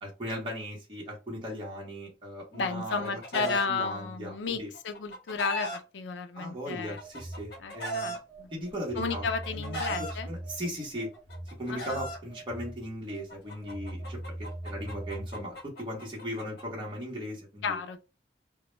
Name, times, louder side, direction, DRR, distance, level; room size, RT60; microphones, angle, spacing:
voice 1, 0.0-4.7 6.4-8.2 8.5-9.2 9.5-11.1 11.5-17.8, equal, 30° right, 0.8 m, -38 dB
voice 2, 2.5-7.0 7.6-8.5 9.0-10.3 11.7-12.0 17.6-18.0, left 4 dB, 90° left, 0.4 m, -33 dB
Chicken rooster, 2.5-3.7 4.7-5.8 6.8-8.2 9.1-10.1 11.1-12.2 13.3-16.6, right 1 dB, 60° left, 0.8 m, -37 dB
Telephone, 7.0-15.6, right 1 dB, 15° left, 0.5 m, -41 dB
2.1 x 2.0 x 3.0 m
head